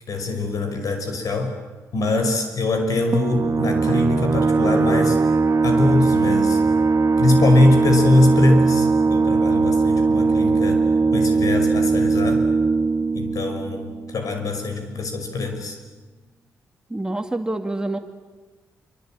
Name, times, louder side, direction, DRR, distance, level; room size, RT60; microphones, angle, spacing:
voice 1, 0.1-1.6 1.9-5.2 5.6-6.6 7.2-10.8 11.1-12.4 13.1-15.8, left 2 dB, 65° left, 6 dB, 5.9 m, -22 dB
sound 1, 3.1-14.4, right 4 dB, 50° right, 1.2 m, -20 dB
voice 2, 16.9-18.0, right 2 dB, 10° right, 5 dB, 2.5 m, -26 dB
27.0 x 24.5 x 9.1 m, 1.3 s
cardioid pair, 65°, 6 cm